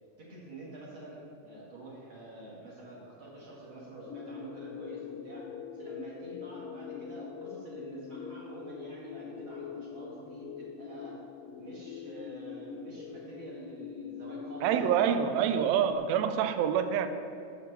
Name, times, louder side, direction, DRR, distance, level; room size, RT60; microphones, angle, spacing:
voice 1, 0.2-5.5 5.7-11.2 11.6-14.9, right 2 dB, 45° right, -5 dB, 2.8 m, -47 dB
sound 1, 4.1-15.9, left 7 dB, 75° left, 1.6 m, -43 dB
voice 2, 14.6-17.1, right 8 dB, 80° right, 10 dB, 1.8 m, -26 dB
7.6 x 7.0 x 6.9 m, 2.4 s
omnidirectional pair, 3.4 m